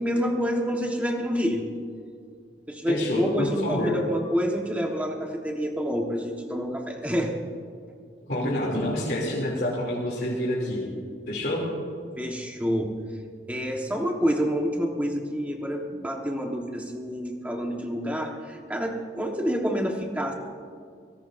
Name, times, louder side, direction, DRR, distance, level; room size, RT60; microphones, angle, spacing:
voice 1, 0.0-1.6 2.7-7.3 12.2-12.9 13.5-20.3, equal, 10° right, 1 dB, 1.3 m, -28 dB
voice 2, 2.9-4.0 8.3-10.8 11.3-11.6, left 1 dB, 65° left, -5 dB, 2.9 m, -27 dB
24.0 x 17.5 x 2.6 m, 2.2 s
head